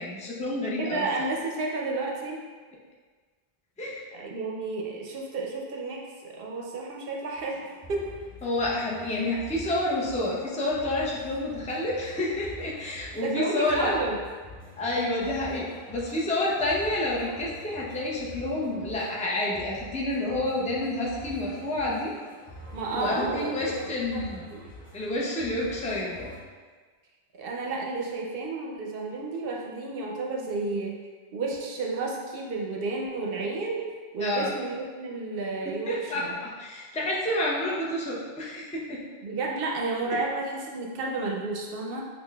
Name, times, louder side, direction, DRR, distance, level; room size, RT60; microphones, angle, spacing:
voice 1, 0.0-1.1 3.8-4.0 8.4-13.9 14.8-22.1 22.9-24.5 24.9-26.3 34.2-34.5 35.6-39.0 40.1-40.2, left 1 dB, 10° left, -4 dB, 0.3 m, -29 dB
voice 2, 0.8-2.4 4.1-7.6 7.9-8.1 13.2-14.2 22.7-24.6 27.4-31.0 31.3-33.8 34.1-36.3 39.2-42.0, right 3 dB, 70° right, -1 dB, 0.7 m, -31 dB
sound 1, 7.4-26.4, left 1 dB, 10° right, 1.1 m, -46 dB
6.5 x 2.4 x 2.2 m, 1.5 s
omnidirectional pair, 1.0 m